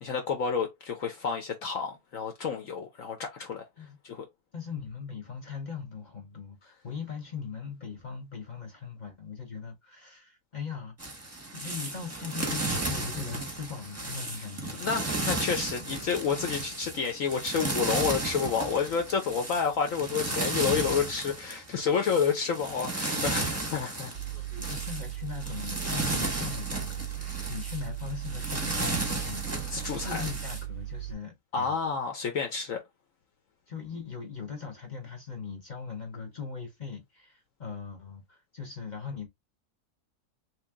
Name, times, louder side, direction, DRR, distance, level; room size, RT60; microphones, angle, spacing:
voice 1, 0.0-3.6 4.0-4.2 14.8-24.1 29.7-30.2 31.5-32.8, left 6 dB, 65° left, 1.0 m, -29 dB
voice 2, 4.5-11.2 11.5-14.8 15.4-15.6 24.3-31.8 33.7-39.3, left 6 dB, 35° left, 0.8 m, -40 dB
sound 1, 11.0-30.6, right 2 dB, 10° right, 0.9 m, -34 dB
Mechanical fan, 24.1-31.1, right 16 dB, 75° right, 0.4 m, -38 dB
3.2 x 2.8 x 3.5 m
omnidirectional pair, 1.7 m